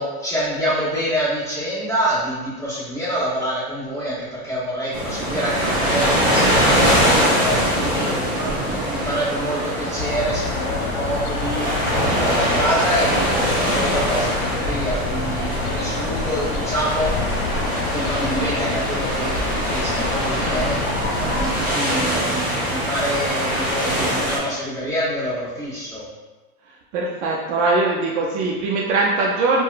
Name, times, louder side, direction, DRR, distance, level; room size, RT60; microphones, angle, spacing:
voice 1, 0.0-17.1 17.9-26.0, equal, 5° left, -11 dB, 1.3 m, -26 dB
sound 1, 4.9-24.4, equal, 20° right, 0.9 m, -23 dB
sound 2, 10.0-21.4, left 4 dB, 75° left, 0.6 m, -29 dB
Car, 13.6-21.7, right 1 dB, 30° left, 0.5 m, -34 dB
voice 2, 26.9-29.6, right 3 dB, 55° right, -2 dB, 0.5 m, -21 dB
2.7 x 2.2 x 2.4 m, 1.2 s
supercardioid pair, 120°, 45 cm